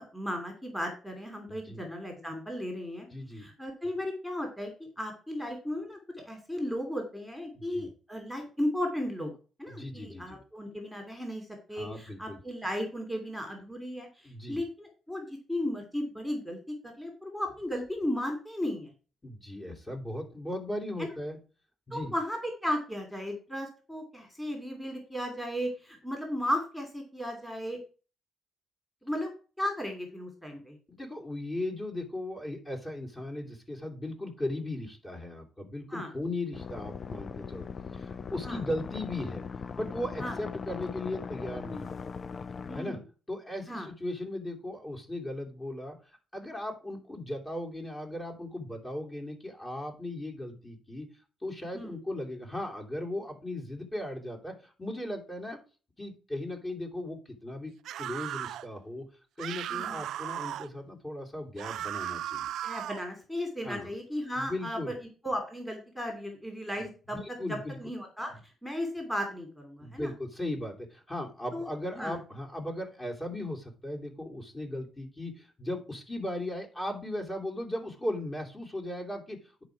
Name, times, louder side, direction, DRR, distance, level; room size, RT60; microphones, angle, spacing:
voice 1, 0.0-3.1 3.3-6.0 6.2-9.3 9.6-18.9 21.0-21.1 21.9-27.8 29.0-30.8 35.9-36.1 38.4-38.6 40.2-40.4 42.7-43.0 43.7-43.9 51.7-52.0 59.7-60.0 62.6-64.9 65.2-67.2 67.5-68.3 68.6-70.1 71.5-72.2, left 1 dB, 5° left, 2 dB, 2.8 m, -35 dB
voice 2, 1.5-1.8 3.1-3.5 7.5-7.9 9.7-10.4 11.8-12.4 14.2-14.6 19.2-21.4 21.9-22.1 30.9-37.7 37.9-39.4 39.7-42.0 42.7-43.0 43.3-46.0 46.3-51.1 51.4-55.6 56.0-57.7 58.0-59.0 59.4-62.5 63.6-63.9 64.4-65.0 67.1-67.8 69.8-79.6, left 1 dB, 20° left, 0 dB, 3.0 m, -37 dB
sound 1, 36.5-42.8, left 5 dB, 40° left, 0.5 m, -39 dB
sound 2, 57.8-58.7 59.4-60.7 61.6-63.1, right 12 dB, 75° right, 0.3 m, -36 dB
10.0 x 5.1 x 4.7 m, 0.36 s
cardioid pair, 90°, 0 cm